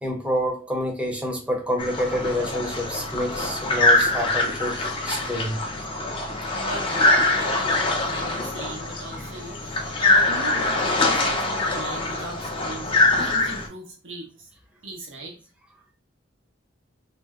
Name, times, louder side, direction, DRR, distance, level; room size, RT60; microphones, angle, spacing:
voice 1, 0.0-5.6 9.2-9.4, equal, 5° right, 0.7 m, -28 dB
sound 1, 1.8-13.7, left 2 dB, 25° left, 0.5 m, -23 dB
voice 2, 6.5-14.5 14.8-15.3, right 2 dB, 75° right, 1.0 m, -38 dB
2.7 x 2.1 x 3.5 m
head